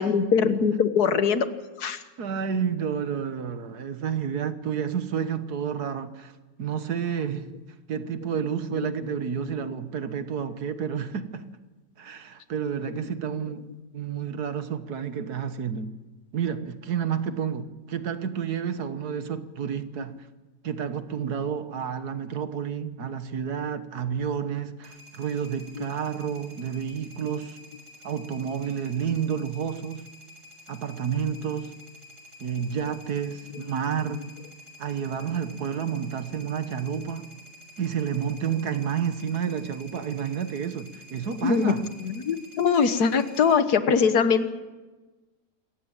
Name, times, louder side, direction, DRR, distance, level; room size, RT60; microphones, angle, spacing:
voice 1, 0.0-1.5 1.8-2.0 25.8-25.9 41.4-41.7 42.0-44.5, left 6 dB, 65° left, 1.7 m, -22 dB
voice 2, 2.2-6.3 6.6-7.5 7.9-11.5 12.0-13.7 13.9-15.9 16.3-20.3 20.6-27.6 28.0-30.1 30.7-31.8 32.4-34.3 34.8-37.3 37.8-41.9, right 7 dB, 65° right, 1.7 m, -30 dB
sound 1, 24.8-43.5, left 1 dB, 85° right, 7.7 m, -50 dB
27.5 x 15.0 x 9.0 m
omnidirectional pair, 1.8 m